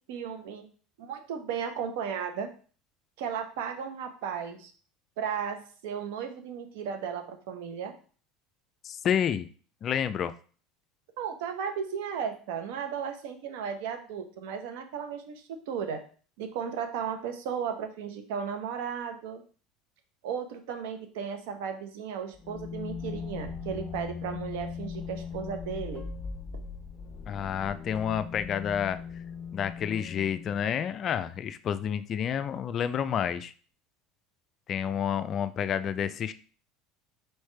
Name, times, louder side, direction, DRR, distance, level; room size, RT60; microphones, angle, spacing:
voice 1, 0.1-0.7 1.0-2.5 3.2-4.7 5.2-7.9 11.2-16.0 16.4-19.4 20.2-26.0, right 7 dB, 80° right, 7 dB, 0.7 m, -35 dB
voice 2, 8.8-9.5 9.8-10.3 27.3-29.0 29.5-33.5 34.7-36.3, left 8 dB, 40° left, 12 dB, 0.3 m, -29 dB
sound 1, 22.3-30.9, left 5 dB, 20° left, 1.0 m, -39 dB
4.5 x 3.2 x 3.2 m, 0.40 s
supercardioid pair, 110°, 0 cm